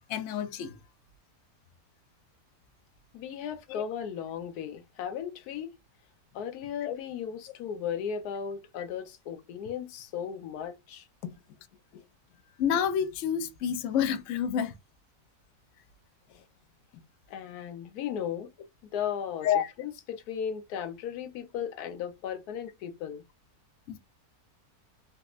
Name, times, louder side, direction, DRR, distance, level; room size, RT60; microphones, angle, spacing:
voice 1, 0.1-0.8 3.7-3.8 6.8-6.9 12.6-14.7 19.4-19.7 23.9-24.0, left 8 dB, 65° left, 0.8 m, -28 dB
voice 2, 3.1-5.7 6.3-11.4 11.9-12.0 16.3-16.4 16.9-17.0 17.3-18.5 18.9-19.5 19.8-23.2, left 8 dB, 85° left, 1.1 m, -36 dB
3.3 x 3.0 x 2.4 m
omnidirectional pair, 1.6 m